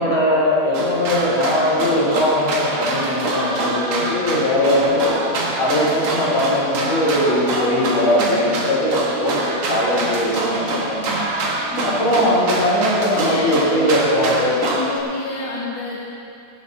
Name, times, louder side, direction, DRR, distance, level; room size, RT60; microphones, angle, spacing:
voice 1, 0.0-5.2 5.6-9.4 9.7-11.3 11.8-14.6, left 1 dB, 55° left, -7 dB, 4.8 m, -20 dB
sound 1, 0.7-15.0, right 2 dB, 60° right, 2.6 m, -25 dB
voice 2, 9.9-10.3 11.7-12.0 13.1-14.0 14.7-16.0, left 3 dB, 75° left, -4 dB, 2.7 m, -29 dB
18.0 x 12.0 x 4.0 m, 2.7 s
omnidirectional pair, 3.8 m